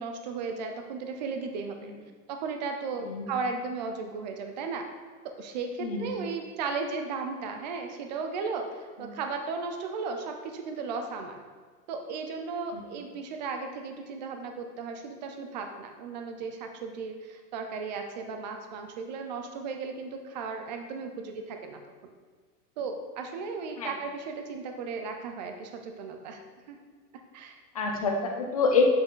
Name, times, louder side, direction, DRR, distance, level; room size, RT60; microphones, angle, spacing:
voice 1, 0.0-1.9 2.3-4.9 5.2-11.4 11.9-21.8 22.8-26.4 26.7-26.8 27.3-27.6, right 4 dB, 30° right, 5 dB, 0.5 m, -35 dB
voice 2, 5.8-6.2 9.0-9.1 12.7-12.9 23.8-23.9 27.7-28.8, left 5 dB, 25° left, 1 dB, 0.3 m, -27 dB
8.2 x 5.6 x 3.7 m, 1.5 s
supercardioid pair, 165°, 50 cm